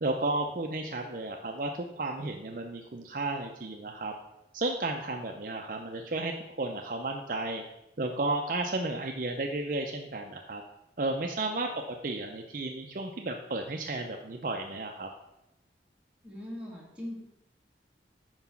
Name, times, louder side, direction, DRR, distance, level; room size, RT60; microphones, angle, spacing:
voice 1, 0.0-4.1 4.5-7.6 8.0-10.6 11.0-11.7 12.0-15.1, right 2 dB, 50° right, 3 dB, 0.5 m, -33 dB
voice 2, 16.2-17.2, left 1 dB, 5° right, -4 dB, 1.7 m, -40 dB
6.0 x 4.7 x 5.7 m, 0.90 s
head